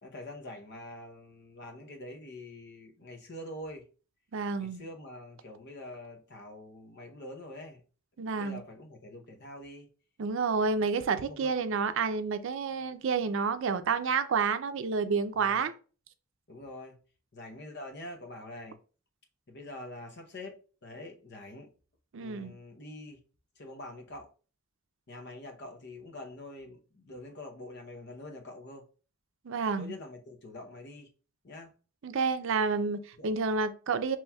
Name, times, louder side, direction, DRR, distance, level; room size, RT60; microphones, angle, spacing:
voice 1, 0.0-3.9 4.6-7.8 8.3-9.9 11.1-11.5 15.3-15.7 16.5-17.0 17.3-18.8 19.5-21.7 22.2-23.2 23.6-24.3 25.1-28.8 29.8-31.1 31.4-31.7 33.2-33.3, left 1 dB, 55° left, 0.8 m, -45 dB
voice 2, 4.3-4.8 8.2-8.6 10.2-15.7 22.1-22.5 29.4-29.9 32.0-34.2, right 5 dB, 70° right, 0.5 m, -29 dB
5.6 x 3.0 x 2.3 m
head